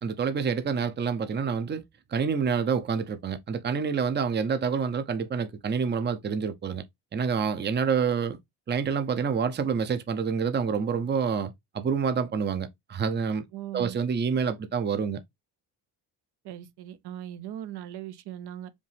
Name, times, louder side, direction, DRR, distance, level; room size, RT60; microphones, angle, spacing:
voice 1, 0.0-1.8 2.1-6.8 7.1-8.4 8.7-13.5 13.7-15.2, right 6 dB, 25° right, 0.6 m, -27 dB
voice 2, 13.5-14.0 16.4-18.7, right 11 dB, 65° right, 0.8 m, -39 dB
5.1 x 2.6 x 3.4 m
cardioid pair, 80°, 42 cm